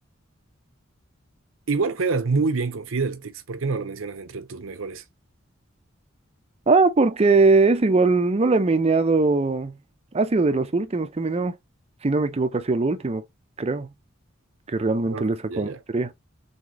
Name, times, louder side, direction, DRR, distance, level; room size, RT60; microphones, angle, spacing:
voice 1, 1.7-5.0 15.1-15.2 15.5-15.8, right 4 dB, 75° right, 0.7 m, -26 dB
voice 2, 6.7-9.8 10.1-11.5 12.0-13.2 13.6-13.9 14.7-16.1, right 3 dB, 30° right, 0.5 m, -21 dB
3.9 x 3.5 x 3.0 m
head